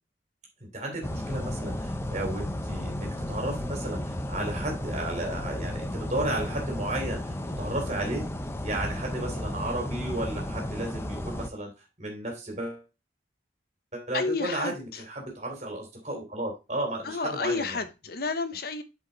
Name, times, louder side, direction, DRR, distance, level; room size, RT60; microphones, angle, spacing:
voice 1, 0.6-8.3 8.6-11.7 12.0-12.8 13.9-17.8, right 1 dB, 35° right, 2.8 m, -33 dB
sound 1, 1.0-11.5, left 1 dB, 15° left, 0.6 m, -33 dB
voice 2, 14.1-15.0 17.0-18.8, left 4 dB, 50° left, 0.8 m, -31 dB
7.7 x 5.4 x 3.9 m
head